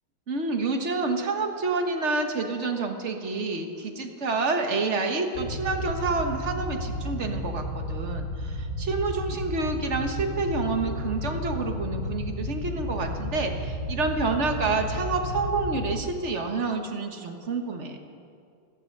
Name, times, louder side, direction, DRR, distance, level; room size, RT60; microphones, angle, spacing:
voice 1, 0.3-18.0, right 3 dB, 40° right, 4 dB, 1.4 m, -28 dB
sound 1, 5.3-16.0, equal, 45° left, 3.9 m, -33 dB
16.5 x 13.0 x 6.6 m, 2.3 s
omnidirectional pair, 2.2 m